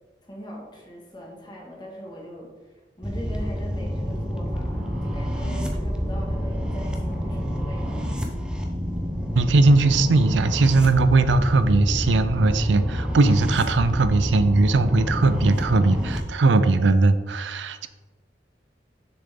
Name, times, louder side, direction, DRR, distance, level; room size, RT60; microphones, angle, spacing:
voice 1, 0.2-8.2, equal, 25° left, -2 dB, 1.8 m, -40 dB
sound 1, 3.0-16.2, equal, 5° right, 0.8 m, -28 dB
voice 2, 9.4-17.9, right 3 dB, 80° right, 11 dB, 0.5 m, -19 dB
7.0 x 6.8 x 3.7 m, 1.3 s
head